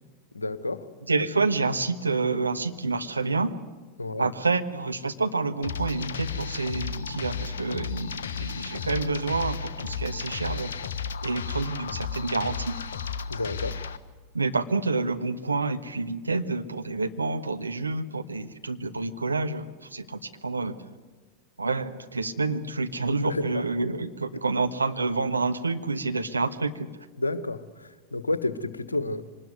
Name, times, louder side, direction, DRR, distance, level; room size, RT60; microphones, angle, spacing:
voice 1, 0.3-0.8 4.0-4.3 13.3-13.7 23.2-23.6 27.2-29.2, left 2 dB, 80° left, 14 dB, 1.4 m, -30 dB
voice 2, 1.1-3.5 4.2-10.7 11.2-12.7 14.3-20.7 21.6-26.9, right 3 dB, 80° right, 7 dB, 1.3 m, -28 dB
sound 1, 5.6-14.0, left 6 dB, 65° left, 1.2 m, -33 dB
24.5 x 20.0 x 9.4 m, 1.4 s
figure-of-eight pair, 90°, 0 cm